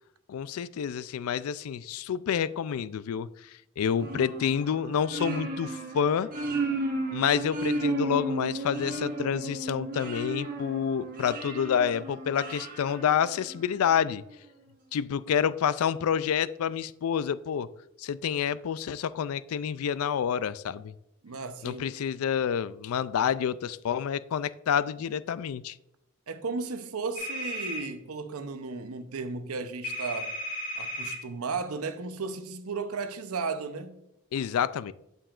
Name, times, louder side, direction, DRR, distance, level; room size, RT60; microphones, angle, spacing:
voice 1, 0.3-3.3 3.8-6.3 7.1-14.2 14.9-17.7 18.0-20.9 21.6-25.7 34.3-34.9, left 8 dB, 80° left, 0.3 m, -28 dB
sound 1, 4.0-13.8, right 2 dB, 40° right, 1.2 m, -34 dB
voice 2, 21.2-21.8 26.3-30.4 30.8-34.0, right 4 dB, 90° right, 0.7 m, -35 dB
sound 2, 27.2-27.8 29.8-31.2, left 1 dB, 35° left, 2.4 m, -34 dB
8.8 x 7.0 x 2.4 m
head